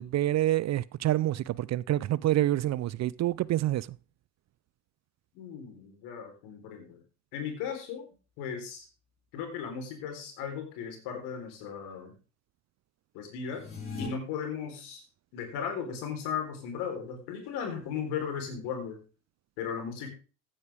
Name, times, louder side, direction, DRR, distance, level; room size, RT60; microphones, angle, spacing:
voice 1, 0.0-3.9, right 14 dB, 40° right, 0.5 m, -27 dB
voice 2, 5.3-7.0 7.3-8.0 8.4-8.9 9.3-12.1 13.1-13.6 14.0-15.0 15.3-19.0 19.6-20.1, left 7 dB, 70° left, 4.1 m, -36 dB
sound 1, 13.5-14.1, left 5 dB, 30° left, 5.1 m, -38 dB
14.5 x 9.7 x 3.5 m
hypercardioid pair, 60°, 41 cm